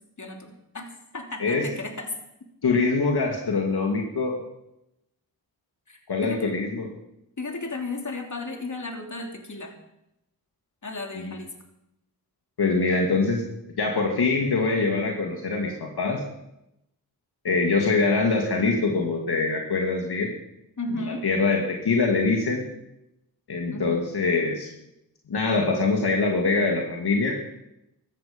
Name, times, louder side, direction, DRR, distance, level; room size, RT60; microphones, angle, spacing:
voice 1, 0.2-2.1 5.9-6.6 7.4-9.7 10.8-11.5 20.8-21.2 23.7-24.1, left 2 dB, 50° left, 3 dB, 3.0 m, -34 dB
voice 2, 2.6-4.4 6.1-6.9 11.2-11.3 12.6-13.4 13.8-16.2 17.4-20.3 20.9-22.6 23.5-24.7 25.3-27.3, left 3 dB, 75° left, 1 dB, 2.2 m, -24 dB
15.5 x 12.5 x 5.2 m, 0.86 s
cardioid pair, 50°, 39 cm